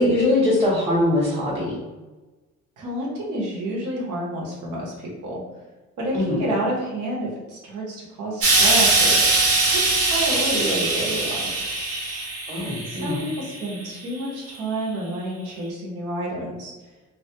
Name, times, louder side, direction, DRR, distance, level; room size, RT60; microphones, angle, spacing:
voice 1, 0.0-1.8 6.1-6.4 12.5-13.2, left 1 dB, 15° right, -7 dB, 0.8 m, -21 dB
voice 2, 2.8-5.4 6.0-11.6 12.9-16.7, right 1 dB, 85° right, -3 dB, 0.9 m, -29 dB
Explosion, 8.4-13.7 14.5-14.6, right 2 dB, 50° right, 0.8 m, -21 dB
2.3 x 2.3 x 2.7 m, 1.2 s
cardioid pair, 90°, 30 cm